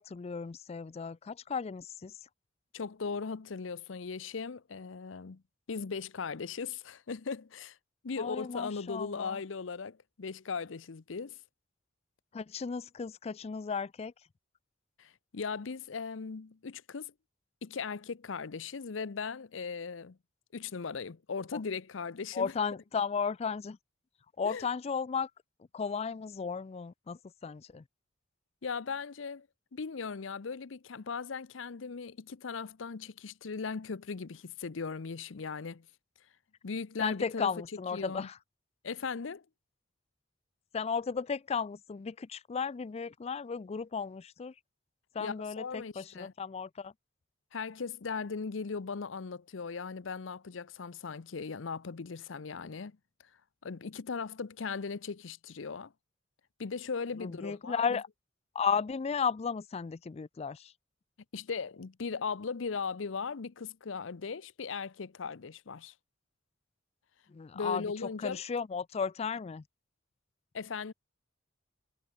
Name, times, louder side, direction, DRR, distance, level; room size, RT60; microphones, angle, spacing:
voice 1, 0.0-2.3 8.2-9.4 12.3-14.1 21.5-21.6 22.3-23.8 24.4-25.3 25.7-27.8 37.0-38.4 40.7-44.6 45.1-46.9 57.2-58.1 58.5-60.7 67.3-67.9 68.2-69.6, left 6 dB, 35° left, 0.4 m, -35 dB
voice 2, 2.7-5.4 5.7-7.8 8.0-11.4 15.0-17.1 17.6-20.2 20.5-22.5 24.4-24.7 28.6-29.5 29.7-35.9 36.6-37.5 37.9-38.3 38.8-39.4 45.2-46.3 47.5-53.0 53.6-55.9 56.6-58.0 61.3-65.9 67.5-68.4 70.5-70.9, left 5 dB, 85° left, 0.7 m, -38 dB
head